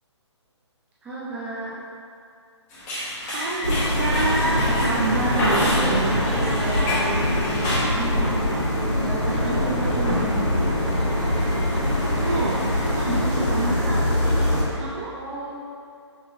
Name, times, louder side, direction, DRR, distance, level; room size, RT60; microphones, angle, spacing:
voice 1, 1.0-1.7 5.0-10.6 15.1-15.5, right 2 dB, 10° right, -9 dB, 0.8 m, -33 dB
sound 1, 2.7-7.8, left 1 dB, 20° left, 1.0 m, -30 dB
voice 2, 2.8-7.1 9.3-9.5 12.1-15.2, right 2 dB, 30° right, -4 dB, 0.4 m, -28 dB
sound 2, 3.6-14.6, left 1 dB, 80° left, 1.4 m, -23 dB
5.8 x 2.8 x 2.8 m, 2.4 s
figure-of-eight pair, 135°, 15 cm